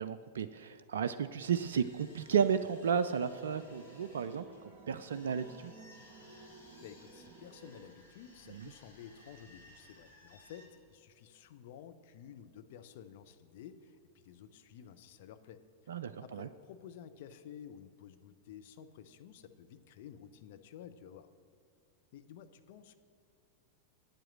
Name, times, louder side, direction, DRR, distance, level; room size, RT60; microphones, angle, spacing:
voice 1, 0.0-4.5 4.9-5.7 8.5-8.7 15.9-16.5, right 7 dB, 65° right, 11 dB, 0.3 m, -33 dB
sound 1, 1.5-10.7, left 1 dB, 85° left, 3.2 m, -60 dB
sound 2, 2.8-7.9, right 3 dB, 30° right, 1.6 m, -55 dB
voice 2, 6.8-21.3 22.1-23.0, left 9 dB, 50° left, 9 dB, 0.6 m, -52 dB
8.8 x 7.6 x 7.8 m, 2.3 s
figure-of-eight pair, 90°, 0 cm